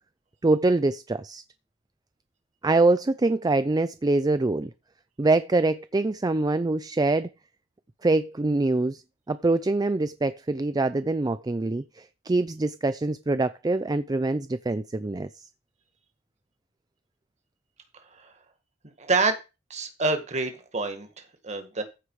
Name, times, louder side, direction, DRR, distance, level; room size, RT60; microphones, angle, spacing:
voice 1, 0.4-1.4 2.6-4.7 5.2-7.3 8.0-9.0 9.3-15.3, right 2 dB, 20° right, 0.4 m, -24 dB
voice 2, 19.0-19.4 19.7-21.1 21.4-21.8, right 3 dB, 40° right, 1.9 m, -26 dB
14.5 x 5.0 x 4.8 m
head